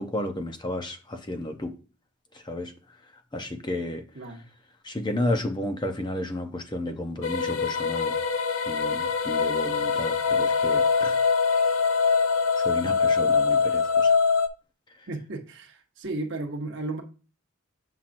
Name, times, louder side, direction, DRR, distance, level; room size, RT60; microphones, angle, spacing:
voice 1, 0.0-1.8 2.3-2.7 3.3-4.0 4.8-8.2 8.7-11.2 12.6-14.1 15.0-15.1, left 1 dB, 20° left, 0.6 m, -32 dB
sound 1, 7.2-14.5, left 5 dB, 70° left, 0.5 m, -23 dB
voice 2, 15.1-17.0, right 2 dB, 55° right, 1.0 m, -34 dB
7.4 x 5.7 x 2.5 m
head